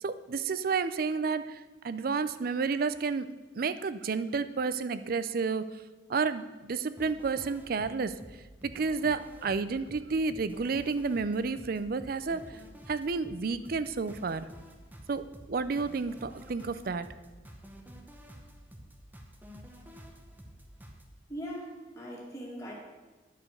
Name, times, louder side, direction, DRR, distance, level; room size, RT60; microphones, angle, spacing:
voice 1, 0.0-3.3 3.6-5.7 6.1-8.2 8.6-12.6 12.9-14.5 15.1-17.1, right 4 dB, 50° right, 13 dB, 0.5 m, -31 dB
sound 1, 7.0-21.1, equal, 10° right, 0.8 m, -50 dB
voice 2, 21.3-22.7, equal, 15° left, -3 dB, 2.1 m, -40 dB
11.0 x 5.0 x 6.4 m, 1.2 s
head